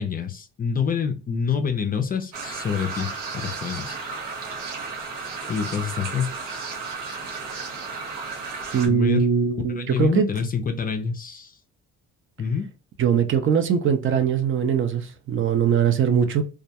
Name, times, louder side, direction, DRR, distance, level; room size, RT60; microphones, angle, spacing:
voice 1, 0.0-4.0 5.5-6.6 8.9-9.3 9.8-11.6 12.4-12.7, left 6 dB, 30° left, 0.4 m, -27 dB
sound 1, 2.3-8.9, right 4 dB, 85° right, 0.9 m, -33 dB
voice 2, 8.7-10.3 13.0-16.4, right 7 dB, 45° right, 0.5 m, -21 dB
2.3 x 2.1 x 2.8 m
supercardioid pair, 85°, 30 cm